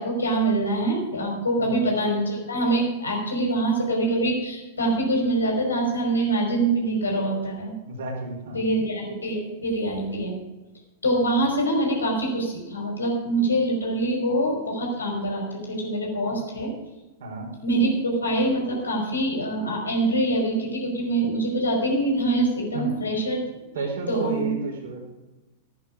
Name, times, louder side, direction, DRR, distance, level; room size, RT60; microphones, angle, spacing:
voice 1, 0.0-7.7 8.5-10.3 11.0-16.7 17.6-24.5, right 1 dB, 75° left, 0 dB, 5.4 m, -25 dB
voice 2, 7.9-8.6 17.2-17.5 22.7-23.0 23.7-25.1, right 3 dB, 60° right, 1 dB, 4.5 m, -31 dB
15.5 x 10.5 x 5.0 m, 1.1 s
figure-of-eight pair, 95°, 0 cm